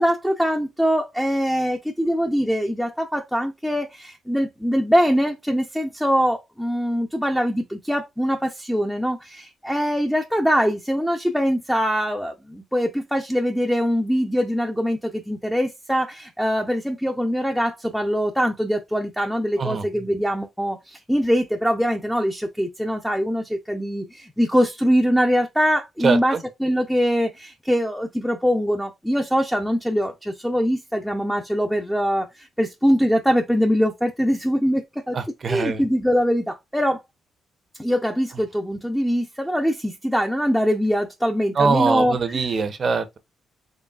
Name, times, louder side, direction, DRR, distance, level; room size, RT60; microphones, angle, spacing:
voice 1, 0.0-35.2 35.5-37.0 37.8-42.5, equal, ahead, 0.6 m, -23 dB
voice 2, 26.0-26.4 35.1-35.8 41.6-43.2, right 5 dB, 45° right, 0.7 m, -22 dB
3.9 x 3.2 x 2.3 m
cardioid pair, 90°, 0 cm